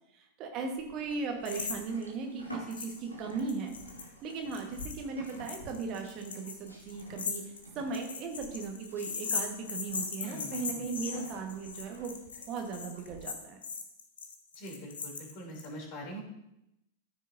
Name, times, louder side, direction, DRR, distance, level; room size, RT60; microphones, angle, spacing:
voice 1, 0.1-3.7 4.2-12.2 12.5-13.6, right 4 dB, 35° right, 3 dB, 1.4 m, -37 dB
Livestock farm animals working animals, 0.8-13.2, equal, 85° left, 2.0 m, -50 dB
sound 1, 1.5-1.8 2.0-2.1 2.7-3.0 3.3-15.7, left 5 dB, 70° left, 1.1 m, -39 dB
voice 2, 10.2-10.9 14.5-16.2, right 1 dB, 45° left, -1 dB, 3.1 m, -43 dB
13.5 x 6.3 x 2.7 m, 0.84 s
figure-of-eight pair, 90°, 0 cm